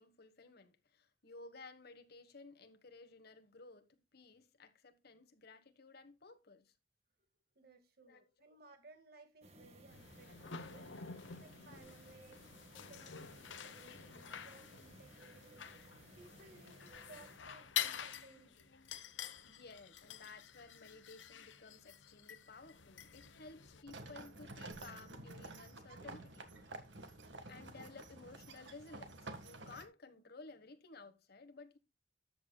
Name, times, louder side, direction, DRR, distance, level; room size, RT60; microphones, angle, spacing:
voice 1, 0.0-6.8 8.0-8.6 19.4-27.0 27.5-31.8, left 3 dB, 60° left, 1.4 m, -56 dB
voice 2, 7.6-10.9 11.4-15.7 16.2-18.7, right 3 dB, 60° right, 1.9 m, -62 dB
sound 1, 9.4-17.4, right 1 dB, 35° right, 1.6 m, -60 dB
sound 2, 9.9-23.8, left 9 dB, 90° left, 0.9 m, -47 dB
sound 3, 23.9-29.8, right 2 dB, 75° right, 1.8 m, -50 dB
13.0 x 8.2 x 2.3 m
head